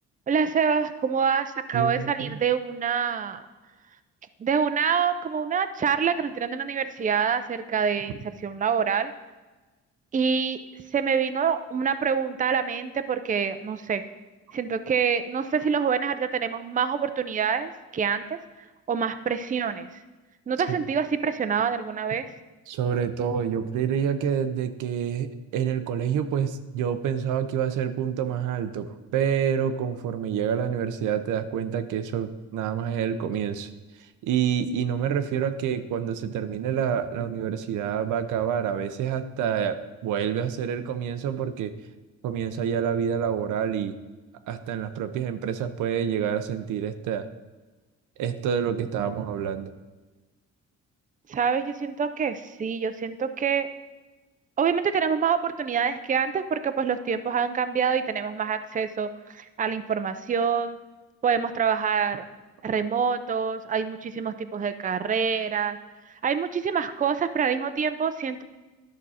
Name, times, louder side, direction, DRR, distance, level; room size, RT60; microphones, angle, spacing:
voice 1, 0.3-3.4 4.4-9.1 10.1-10.6 10.9-14.0 14.5-18.4 18.9-19.9 20.5-22.3 51.3-53.7 54.6-60.8 61.2-62.3 62.6-65.8 66.2-68.4, right 6 dB, 25° right, 10 dB, 0.5 m, -26 dB
voice 2, 1.7-2.4 22.7-33.7 34.0-41.7 42.2-43.9 44.5-47.3 48.2-49.7, right 8 dB, 85° right, 9 dB, 0.7 m, -27 dB
11.0 x 6.1 x 4.2 m, 1.2 s
cardioid pair, 90°, 30 cm